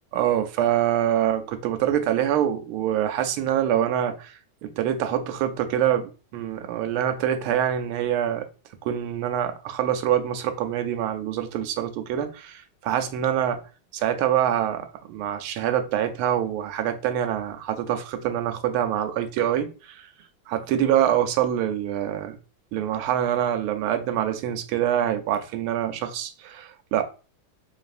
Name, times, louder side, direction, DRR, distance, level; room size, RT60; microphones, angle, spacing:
voice 1, 0.1-4.3 4.6-8.5 8.8-13.6 13.9-20.1 20.5-22.4 22.7-27.0, right 10 dB, 85° right, 1.5 m, -25 dB
4.0 x 3.6 x 2.5 m
omnidirectional pair, 2.3 m